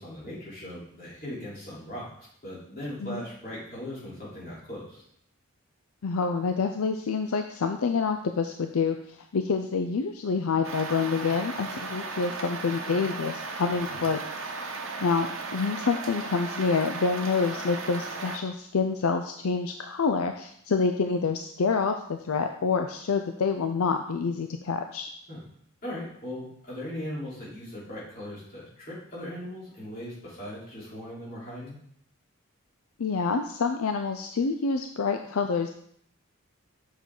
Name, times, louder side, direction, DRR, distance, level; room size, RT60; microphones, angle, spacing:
voice 1, 0.0-5.0 13.9-14.0 25.3-25.4 25.8-31.8, left 1 dB, 40° left, -8 dB, 3.6 m, -39 dB
voice 2, 6.0-14.2 15.0-25.1 33.0-35.7, left 5 dB, 80° left, 6 dB, 0.5 m, -27 dB
sound 1, 10.6-18.4, right 3 dB, 65° right, 0.9 m, -36 dB
7.3 x 6.2 x 3.8 m, 0.67 s
head